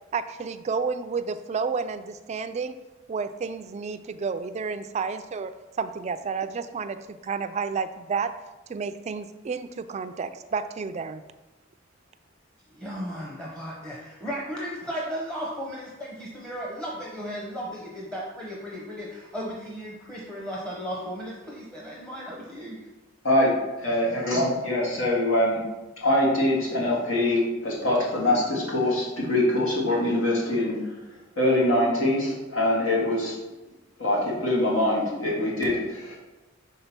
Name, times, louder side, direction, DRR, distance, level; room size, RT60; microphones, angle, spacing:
voice 1, 0.1-2.8 3.1-5.5 5.8-8.3 8.7-11.2, right 5 dB, 35° right, 10 dB, 0.3 m, -31 dB
voice 2, 12.7-22.8, equal, 5° left, -5 dB, 0.7 m, -35 dB
voice 3, 23.8-25.6 26.0-30.9 31.4-33.3 34.0-36.2, left 1 dB, 85° left, -5 dB, 2.1 m, -23 dB
5.4 x 3.6 x 5.9 m, 1.1 s
head